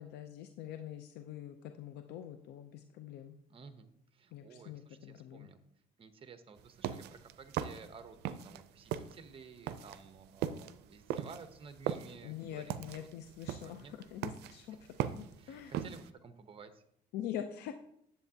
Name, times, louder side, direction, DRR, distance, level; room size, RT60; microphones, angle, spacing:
voice 1, 0.0-3.3 4.3-5.5 12.2-14.8 15.2-15.8 17.1-17.7, left 10 dB, 80° left, 7 dB, 0.6 m, -44 dB
voice 2, 3.5-5.6 6.0-13.1 13.6-14.0 15.4-16.8, right 5 dB, 35° right, 9 dB, 0.9 m, -53 dB
sound 1, 6.6-8.6 8.9-16.1, right 10 dB, 80° right, 0.5 m, -38 dB
10.0 x 7.7 x 2.8 m, 0.73 s
cardioid pair, 110°, 17 cm